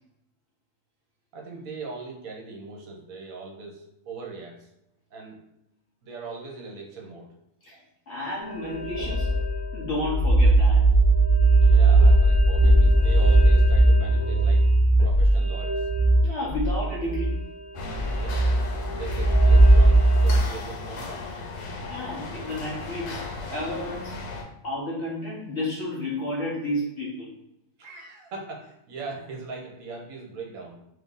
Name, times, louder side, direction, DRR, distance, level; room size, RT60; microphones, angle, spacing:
voice 1, 1.3-4.7 5.1-5.4 6.0-7.3 11.5-14.6 15.0-15.9 18.1-18.5 18.9-21.3 27.8-30.8, right 4 dB, 65° right, 0 dB, 1.2 m, -40 dB
voice 2, 8.1-9.3 9.7-10.8 16.2-17.4 21.9-23.2 23.5-24.2 24.6-27.3, left 1 dB, 55° left, -5 dB, 0.9 m, -31 dB
sound 1, 8.4-20.4, right 1 dB, 25° right, 0.8 m, -19 dB
sound 2, 17.7-24.4, left 3 dB, 90° left, 1.3 m, -36 dB
3.0 x 2.6 x 3.6 m, 0.82 s
omnidirectional pair, 1.6 m